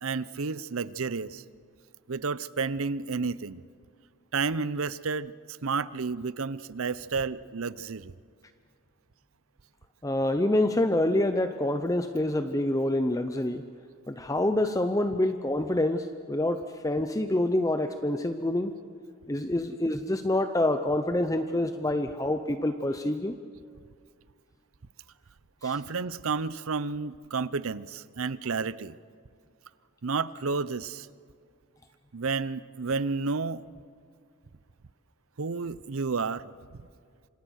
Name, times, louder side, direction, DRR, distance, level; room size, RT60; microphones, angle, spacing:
voice 1, 0.0-1.4 2.1-3.6 4.3-8.1 25.6-29.0 30.0-31.1 32.1-33.6 35.4-36.5, right 4 dB, 70° right, 17 dB, 0.7 m, -31 dB
voice 2, 10.0-13.6 14.1-18.7 19.3-23.4 25.6-25.8, left 1 dB, 15° left, 8 dB, 0.6 m, -27 dB
27.5 x 26.0 x 6.4 m, 2.1 s
head